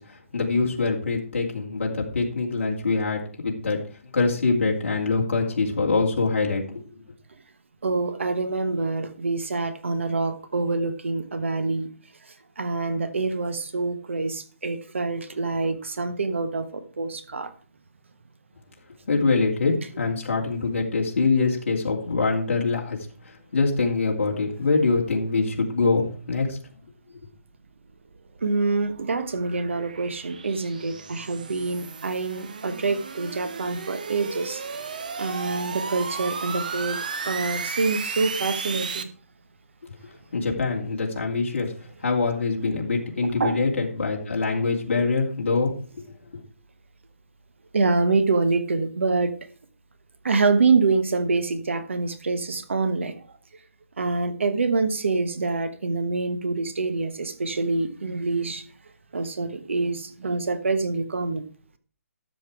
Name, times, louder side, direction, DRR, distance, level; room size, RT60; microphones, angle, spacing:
voice 1, 0.0-6.8 19.1-23.0 23.2-26.6 27.1-27.2 39.8-39.9 40.3-41.7 42.0-46.0 46.3-46.4, left 3 dB, 50° left, -2 dB, 2.6 m, -24 dB
voice 2, 7.8-11.9 12.6-17.5 28.4-34.6 35.2-39.1 43.4-43.6 47.7-49.3 50.2-53.2 54.0-58.7 59.1-61.5, right 3 dB, 55° right, 11 dB, 1.2 m, -26 dB
sound 1, 27.7-39.0, right 5 dB, 35° right, 0.7 m, -35 dB
13.0 x 6.8 x 4.7 m, 0.41 s
hypercardioid pair, 180°, 8 cm